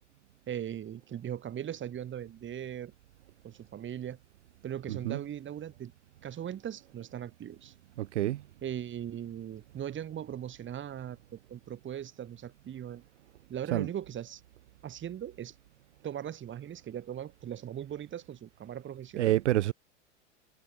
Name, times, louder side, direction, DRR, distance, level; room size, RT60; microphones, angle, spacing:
voice 1, 0.5-2.9 3.4-4.2 4.6-5.9 6.2-7.7 8.6-13.0 13.5-14.4 14.8-15.5 16.0-19.4, right 10 dB, 35° right, 5.5 m, -39 dB
voice 2, 4.9-5.2 8.0-8.4 13.7-13.9 19.2-19.7, right 14 dB, 75° right, 0.9 m, -27 dB
hypercardioid pair, 95°, 35 cm